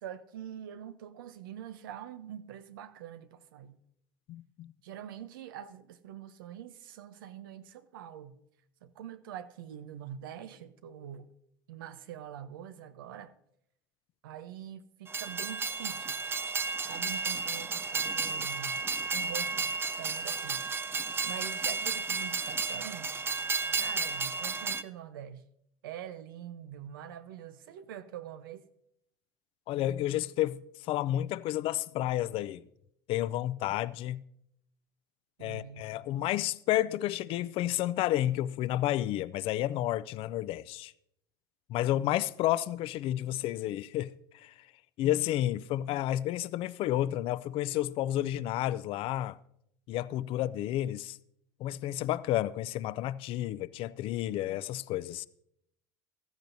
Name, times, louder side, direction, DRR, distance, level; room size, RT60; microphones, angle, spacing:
voice 1, 0.0-3.8 4.8-8.4 8.8-11.3 11.7-13.3 14.2-16.2 16.9-18.8 19.1-20.6 21.2-23.1 23.8-25.4 25.8-28.7 35.4-35.8, right 10 dB, 90° right, 0.7 m, -44 dB
voice 2, 4.3-4.7 29.7-32.6 33.1-34.2 35.4-40.9 41.7-44.5 45.0-49.4 49.9-51.2 51.6-55.3, left 14 dB, 55° left, 0.4 m, -31 dB
Train, 15.1-24.8, right 4 dB, 20° right, 0.4 m, -33 dB
15.5 x 13.0 x 2.7 m
supercardioid pair, 95°, 11 cm